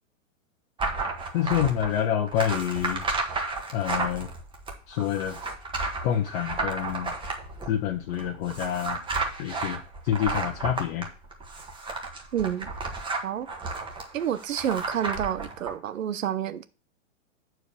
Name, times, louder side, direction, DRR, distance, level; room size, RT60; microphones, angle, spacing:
sound 1, 0.8-15.7, right 3 dB, 10° right, 1.4 m, -33 dB
voice 1, 1.3-3.0 3.7-4.3 4.9-5.4 6.0-7.1 7.7-9.0 9.4-11.1, left 10 dB, 45° left, 1.3 m, -27 dB
voice 2, 12.3-12.7 13.2-13.5 14.1-16.7, right 10 dB, 75° right, 1.0 m, -29 dB
8.1 x 4.7 x 7.0 m
hypercardioid pair, 125°, 40 cm